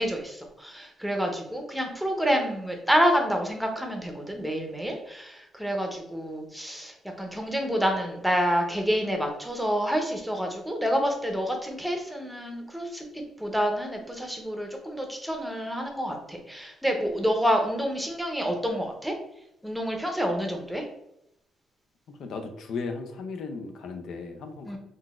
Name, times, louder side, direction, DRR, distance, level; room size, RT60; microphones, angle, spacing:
voice 1, 0.0-19.1 19.6-20.9 24.6-24.8, equal, ahead, 2 dB, 0.7 m, -28 dB
voice 2, 22.1-24.8, left 4 dB, 70° left, 6 dB, 0.4 m, -36 dB
3.8 x 2.3 x 2.4 m, 0.80 s
cardioid pair, 90°, 0 cm